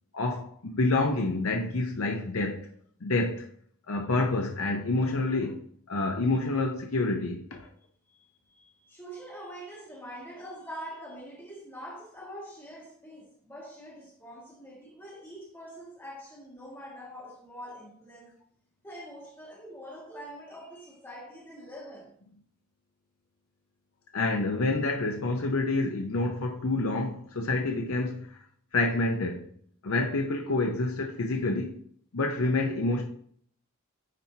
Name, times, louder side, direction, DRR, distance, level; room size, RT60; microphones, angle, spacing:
voice 1, 0.1-2.7 3.0-3.4 3.9-7.7 24.1-28.4 28.7-29.5 29.8-31.7 32.1-33.0, left 2 dB, 70° left, 0.7 m, -28 dB
voice 2, 8.1-18.3 18.8-22.1, equal, 10° left, 1.9 m, -44 dB
9.5 x 4.2 x 2.8 m
head